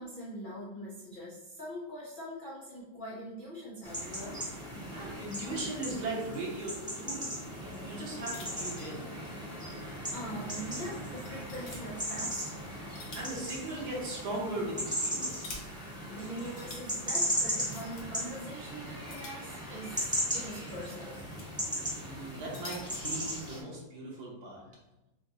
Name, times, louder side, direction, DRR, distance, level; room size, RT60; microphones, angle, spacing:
voice 1, 0.0-4.4 9.6-9.7 10.1-12.6 16.1-21.2, equal, 80° left, -7 dB, 0.4 m, -42 dB
sound 1, 3.8-23.6, equal, 5° right, 0.9 m, -37 dB
voice 2, 4.9-9.1 13.1-15.7 22.0-24.6, right 2 dB, 60° right, -3 dB, 1.6 m, -38 dB
sound 2, 8.3-9.4 9.7-9.8 10.4-10.5 11.2-11.8 12.7-13.4 13.7-13.8 14.8-15.6 16.4-16.8 17.6-18.0 19.1-19.9 20.8-21.4 22.3-23.1, left 2 dB, 55° left, 1.2 m, -47 dB
6.8 x 2.3 x 2.9 m, 0.98 s
omnidirectional pair, 2.1 m